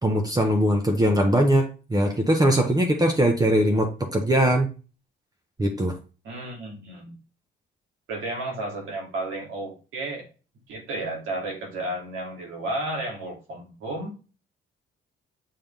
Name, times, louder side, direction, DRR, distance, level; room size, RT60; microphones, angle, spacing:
voice 1, 0.0-4.7 5.6-6.0, right 1 dB, 20° right, 3 dB, 1.0 m, -21 dB
voice 2, 6.2-7.2 8.1-10.2 10.7-14.1, right 2 dB, 85° right, -1 dB, 2.8 m, -32 dB
7.4 x 3.6 x 3.4 m, 0.34 s
cardioid pair, 90°, 20 cm